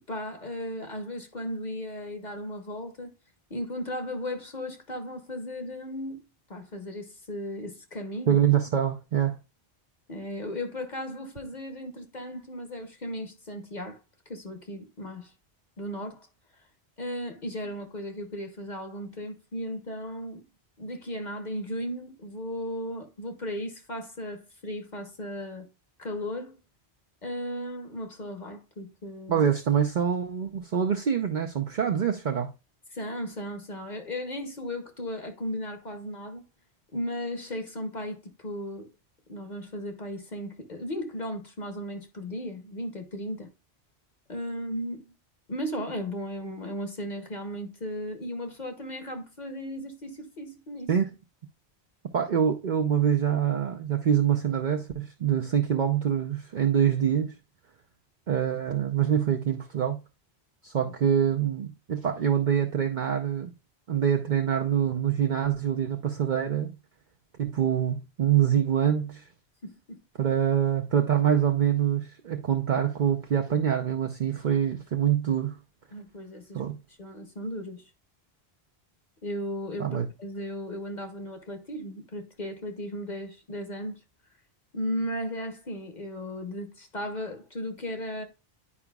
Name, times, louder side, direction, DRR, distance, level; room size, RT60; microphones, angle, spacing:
voice 1, 0.1-3.1 3.5-6.2 6.5-8.4 10.1-14.0 14.3-15.3 15.8-16.3 17.0-20.4 20.8-25.7 26.0-26.6 27.2-29.5 32.9-36.4 36.9-38.9 39.3-43.5 44.3-45.1 45.5-50.9 69.6-70.0 75.9-76.6 77.0-77.9 79.2-79.9 80.2-84.0 84.7-88.2, left 1 dB, 45° left, 1.1 m, -36 dB
voice 2, 8.3-9.4 29.3-32.5 50.9-51.1 52.1-57.3 58.3-60.0 60.6-63.5 63.9-66.7 67.4-69.3 70.2-75.6 76.5-76.8 79.8-80.1, right 9 dB, 50° right, 0.7 m, -25 dB
9.8 x 4.9 x 2.3 m
omnidirectional pair, 1.1 m